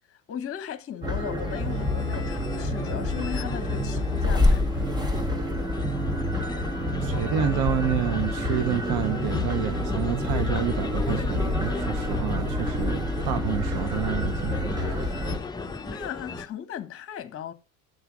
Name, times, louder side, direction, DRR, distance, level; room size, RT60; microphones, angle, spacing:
voice 1, 0.1-4.9 15.9-17.5, left 9 dB, 30° left, 1.0 m, -37 dB
sound 1, 1.0-15.4, left 1 dB, 10° right, 0.9 m, -27 dB
sound 2, 1.4-16.5, left 3 dB, 10° left, 0.6 m, -36 dB
voice 2, 7.0-15.1, right 9 dB, 55° right, 0.9 m, -29 dB
8.0 x 3.4 x 6.0 m
hypercardioid pair, 85°, 43 cm